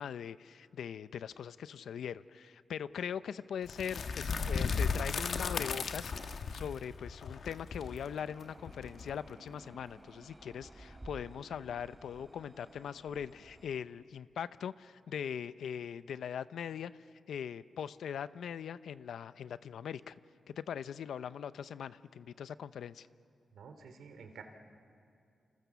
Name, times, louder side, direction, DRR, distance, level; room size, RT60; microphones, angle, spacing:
voice 1, 0.0-16.9 17.3-20.2 20.5-23.1, left 8 dB, 85° left, 15 dB, 0.7 m, -41 dB
sound 1, 3.7-9.5, left 5 dB, 60° left, 1.4 m, -36 dB
sound 2, 7.8-13.8, right 1 dB, 15° right, 2.8 m, -54 dB
voice 2, 23.5-24.4, right 6 dB, 85° right, 7 dB, 2.8 m, -50 dB
28.5 x 28.5 x 7.1 m, 2.5 s
wide cardioid pair, 120°, 0 cm